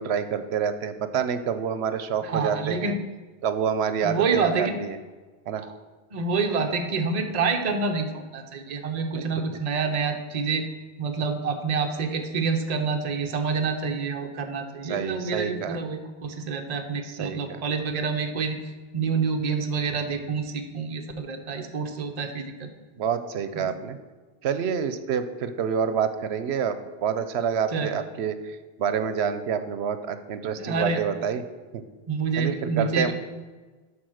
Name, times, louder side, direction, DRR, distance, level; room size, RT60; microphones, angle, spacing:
voice 1, 0.0-3.0 3.4-5.0 5.5-5.6 9.1-9.6 14.8-15.8 17.0-17.6 23.0-24.0 24.4-31.4 31.7-31.8 32.4-33.1, right 7 dB, 80° right, 11 dB, 0.9 m, -28 dB
voice 2, 2.2-3.0 4.0-4.7 5.6-5.7 6.1-10.6 11.0-22.7 23.5-23.7 27.7-28.0 30.6-31.0 32.1-33.1, right 4 dB, 40° right, 4 dB, 0.8 m, -27 dB
12.0 x 4.3 x 6.3 m, 1.3 s
omnidirectional pair, 1.1 m